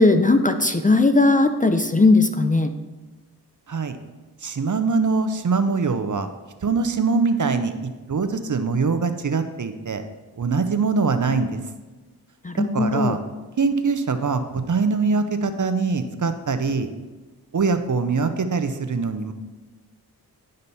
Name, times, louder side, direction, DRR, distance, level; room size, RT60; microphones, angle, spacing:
voice 1, 0.0-2.7 12.4-13.2, left 2 dB, 20° left, 8 dB, 0.6 m, -18 dB
voice 2, 4.4-6.3 6.6-7.7 8.1-10.0 10.4-11.6 12.6-13.2 13.6-16.9 17.5-19.3, right 4 dB, 45° right, 9 dB, 0.8 m, -23 dB
11.0 x 5.2 x 4.2 m, 1.2 s
cardioid pair, 45°, 41 cm